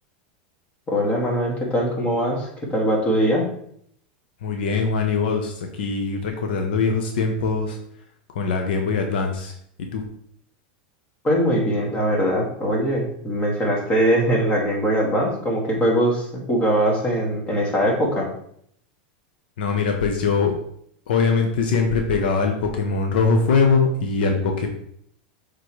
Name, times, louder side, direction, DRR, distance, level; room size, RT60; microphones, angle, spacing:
voice 1, 0.9-3.4 11.2-18.3, equal, 25° left, -2 dB, 2.2 m, -21 dB
voice 2, 4.4-7.8 8.3-9.5 9.8-10.0 19.6-20.6 21.1-24.7, left 4 dB, 80° left, 4 dB, 0.9 m, -22 dB
7.6 x 3.8 x 3.2 m, 0.67 s
supercardioid pair, 120°, 5 cm